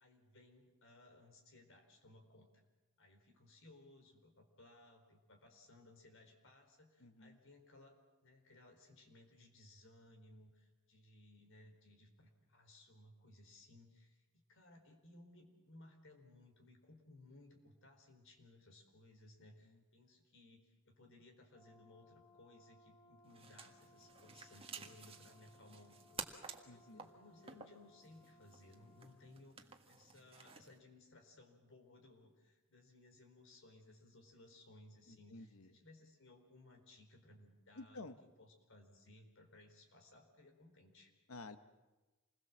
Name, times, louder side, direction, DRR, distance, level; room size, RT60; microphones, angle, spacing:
voice 1, 0.0-2.5 3.0-8.0 8.2-14.2 14.5-38.1 38.4-41.1, left 2 dB, 65° left, 5 dB, 4.5 m, -62 dB
voice 2, 7.0-7.4 19.6-19.8 26.7-27.1 35.1-35.7 37.7-38.2 41.3-41.6, left 2 dB, 85° left, 10 dB, 1.2 m, -52 dB
Brass instrument, 21.5-29.3, left 2 dB, 20° left, 5.5 m, -67 dB
sound 1, 23.2-30.8, right 5 dB, 25° right, 1.6 m, -53 dB
27.5 x 21.0 x 7.4 m, 1.1 s
head